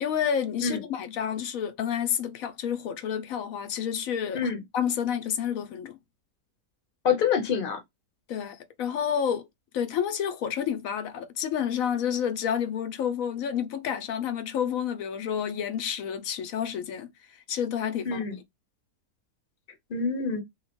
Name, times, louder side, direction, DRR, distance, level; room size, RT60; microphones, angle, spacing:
voice 1, 0.0-6.0 8.3-9.5 9.7-17.1 17.5-18.2, left 8 dB, 65° left, 1.0 m, -29 dB
voice 2, 7.0-7.8 18.0-18.3 19.9-20.4, left 6 dB, 40° left, 1.0 m, -26 dB
3.1 x 2.9 x 4.3 m
omnidirectional pair, 1.8 m